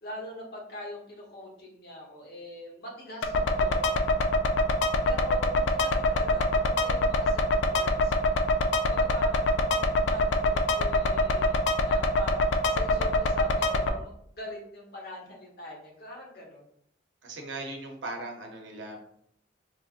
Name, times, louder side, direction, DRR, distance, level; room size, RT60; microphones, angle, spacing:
voice 1, 0.0-4.0 5.0-7.4 7.7-8.5 8.8-16.6, left 1 dB, 55° left, -2 dB, 0.9 m, -43 dB
sound 1, 3.2-13.9, left 1 dB, 75° left, 0.3 m, -25 dB
voice 2, 17.2-19.0, right 2 dB, 85° right, 2 dB, 0.7 m, -38 dB
3.1 x 2.5 x 2.4 m, 0.70 s
head